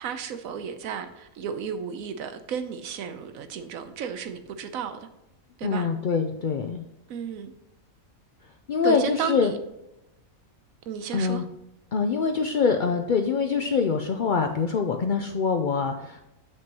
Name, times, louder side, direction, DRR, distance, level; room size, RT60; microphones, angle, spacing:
voice 1, 0.0-5.1 5.6-5.9 7.1-7.5 8.8-9.6 10.9-11.4, right 7 dB, 75° right, 9 dB, 1.1 m, -33 dB
voice 2, 5.6-6.8 8.7-9.5 11.1-11.4 11.9-16.2, left 5 dB, 90° left, 5 dB, 0.4 m, -24 dB
7.6 x 6.2 x 2.9 m, 0.89 s
omnidirectional pair, 1.5 m